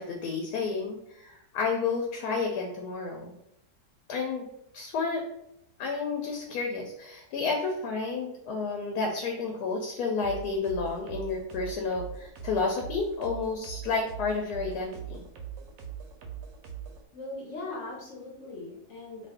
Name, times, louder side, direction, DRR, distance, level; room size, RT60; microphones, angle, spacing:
voice 1, 0.0-3.3 4.1-4.5 4.7-5.2 5.8-15.2, left 4 dB, 75° left, 1 dB, 1.1 m, -31 dB
sound 1, 10.2-17.0, right 8 dB, 70° right, 0.9 m, -41 dB
voice 2, 17.1-19.3, left 2 dB, 60° left, -3 dB, 0.9 m, -40 dB
2.6 x 2.5 x 3.4 m, 0.81 s
omnidirectional pair, 1.7 m